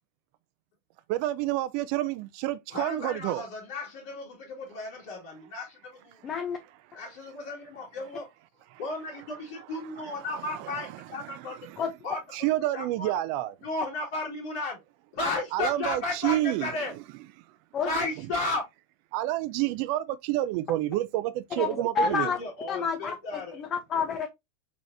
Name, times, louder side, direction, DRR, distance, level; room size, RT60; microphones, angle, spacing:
voice 1, 1.1-3.4 12.3-13.5 15.5-16.7 19.1-22.3, right 15 dB, 55° right, 0.4 m, -28 dB
voice 2, 2.7-6.2 6.9-8.3 8.8-11.6 12.0-12.2 12.7-13.1 13.6-14.8 15.1-16.9 17.8-18.6 21.5-23.6, left 2 dB, 65° left, 2.6 m, -34 dB
voice 3, 6.2-6.6 11.8-11.9 17.7-17.9 21.6-22.4 22.7-24.3, left 5 dB, 35° left, 0.9 m, -29 dB
4.7 x 4.1 x 2.7 m
hypercardioid pair, 100°, 0 cm